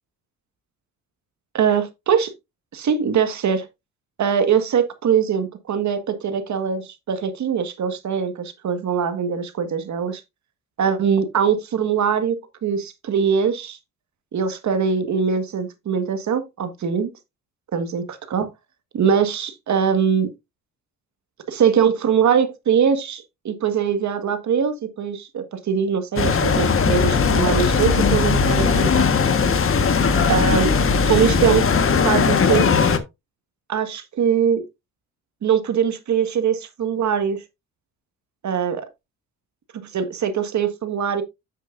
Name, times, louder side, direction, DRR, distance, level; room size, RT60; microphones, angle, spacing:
voice 1, 1.5-2.3 2.7-3.7 4.2-10.2 10.8-13.8 14.3-17.1 17.7-18.5 18.9-20.3 21.5-29.0 30.3-30.7 31.0-31.6 32.0-32.8 33.7-34.6 35.4-37.4 38.4-38.9 39.9-41.2, right 7 dB, 55° right, 1.7 m, -22 dB
sound 1, 26.2-33.0, left 5 dB, 40° left, 1.4 m, -18 dB
9.8 x 7.4 x 2.6 m
cardioid pair, 80°, 33 cm